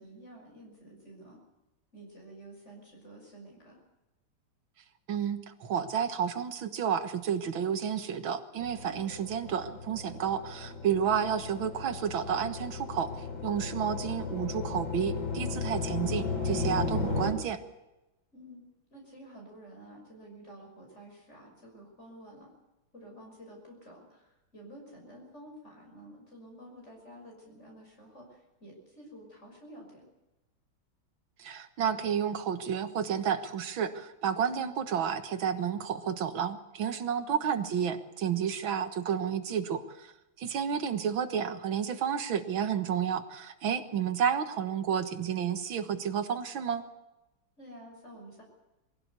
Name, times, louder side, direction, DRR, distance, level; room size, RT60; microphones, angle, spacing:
voice 1, 0.0-1.4 1.9-3.8 8.8-9.0 18.3-22.5 22.9-30.0 37.2-37.5 47.6-48.4, equal, 35° left, 0 dB, 6.4 m, -50 dB
voice 2, 5.1-13.1 13.4-17.6 31.4-40.1 40.4-46.8, right 8 dB, 85° right, 9 dB, 2.2 m, -31 dB
sound 1, 8.6-17.3, left 4 dB, 80° left, 3.9 m, -35 dB
22.5 x 16.5 x 8.2 m, 0.97 s
omnidirectional pair, 2.1 m